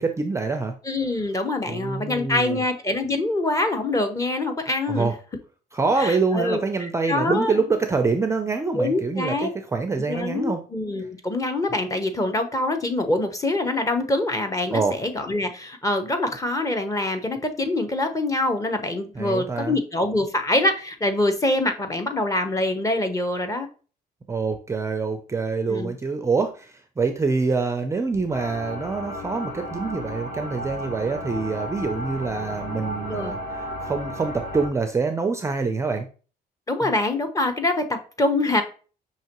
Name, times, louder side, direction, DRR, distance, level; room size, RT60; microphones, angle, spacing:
voice 1, 0.0-0.7 1.7-2.6 4.9-5.1 5.7-10.6 14.7-15.0 19.2-19.8 24.3-33.4 33.8-36.1 36.8-36.9, right 4 dB, 15° right, 6 dB, 0.4 m, -25 dB
voice 2, 0.8-5.1 6.0-6.6 7.1-7.6 8.8-9.5 10.1-23.7 25.7-25.9 33.1-33.4 36.7-38.6, left 2 dB, 20° left, 7 dB, 0.8 m, -25 dB
sound 1, 28.3-34.7, left 1 dB, 55° left, 2.3 m, -34 dB
5.6 x 2.9 x 2.9 m, 0.37 s
cardioid pair, 110°, 17 cm